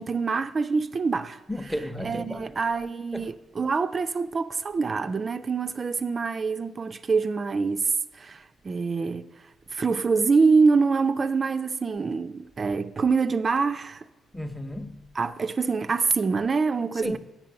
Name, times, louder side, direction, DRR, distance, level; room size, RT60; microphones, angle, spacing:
voice 1, 0.0-1.4 2.0-9.3 9.7-14.0 15.2-17.2, right 4 dB, 35° right, 0.3 m, -25 dB
voice 2, 1.5-2.5 3.1-3.3 14.3-15.0 16.9-17.2, left 1 dB, 5° left, 0.7 m, -33 dB
7.4 x 5.9 x 6.8 m
cardioid pair, 90°, 0 cm